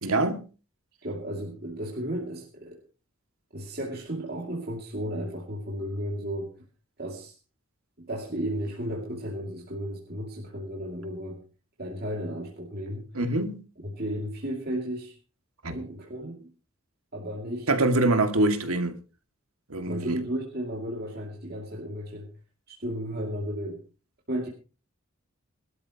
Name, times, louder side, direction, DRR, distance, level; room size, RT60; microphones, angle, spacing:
voice 1, 0.0-0.5 13.1-13.6 15.6-15.8 17.7-19.0 19.7-20.2, right 2 dB, 85° right, 2.2 m, -24 dB
voice 2, 1.0-2.8 3.5-6.6 7.0-7.4 8.0-11.4 11.8-13.2 13.8-15.2 15.7-16.5 17.1-17.7 19.9-22.3 22.7-23.8 24.3-24.5, equal, 45° right, 2.4 m, -34 dB
23.0 x 12.5 x 3.0 m
head